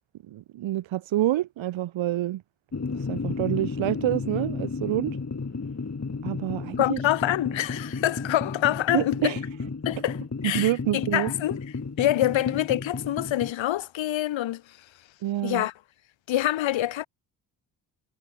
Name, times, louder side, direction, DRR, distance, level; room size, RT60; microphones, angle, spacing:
voice 1, 0.3-2.4 2.9-5.2 6.2-7.0 8.9-9.4 10.4-11.3 15.2-15.7, right 14 dB, 70° right, 1.8 m, -27 dB
sound 1, 2.7-13.5, left 4 dB, 35° left, 7.6 m, -33 dB
voice 2, 6.8-9.3 9.9-10.2 10.4-11.6 12.0-14.6 15.4-15.7 16.3-17.1, left 13 dB, 65° left, 1.8 m, -26 dB
hypercardioid pair, 50°, 48 cm